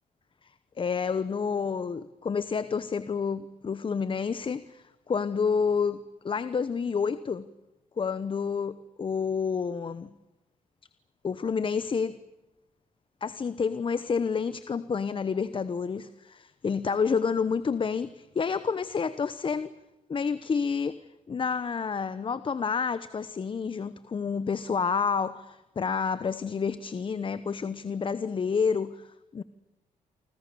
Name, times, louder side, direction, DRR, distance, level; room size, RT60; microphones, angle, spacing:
voice 1, 0.8-7.5 8.0-10.1 11.2-12.2 13.2-19.7 20.1-21.0 21.3-29.4, left 5 dB, 35° left, 14 dB, 1.0 m, -29 dB
29.0 x 25.5 x 7.0 m, 0.98 s
cardioid pair, 90°, 15 cm